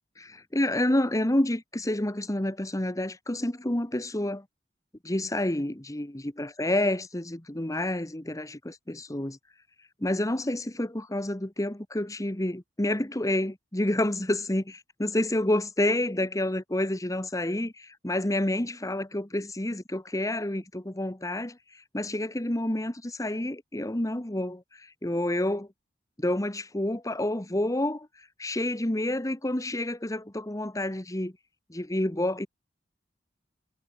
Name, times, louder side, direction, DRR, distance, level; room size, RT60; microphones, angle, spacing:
voice 1, 0.2-4.4 5.0-9.4 10.0-25.7 26.2-28.1 28.4-31.3 31.7-32.5, left 1 dB, 20° left, 1.4 m, -29 dB
head